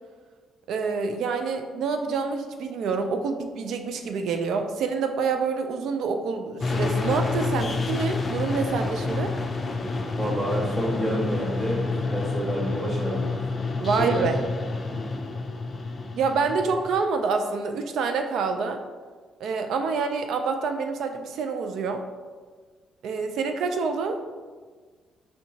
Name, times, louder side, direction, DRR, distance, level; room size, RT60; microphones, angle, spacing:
voice 1, 0.7-9.3 13.8-14.3 16.2-18.8 19.4-22.0 23.0-24.2, right 5 dB, 75° right, 6 dB, 0.3 m, -27 dB
sound 1, 6.6-17.0, left 3 dB, 40° left, 0.4 m, -29 dB
voice 2, 10.1-13.3 14.0-14.3 14.9-15.0, equal, 35° right, -5 dB, 1.3 m, -28 dB
4.3 x 2.8 x 2.7 m, 1.5 s
cardioid pair, 90°, 0 cm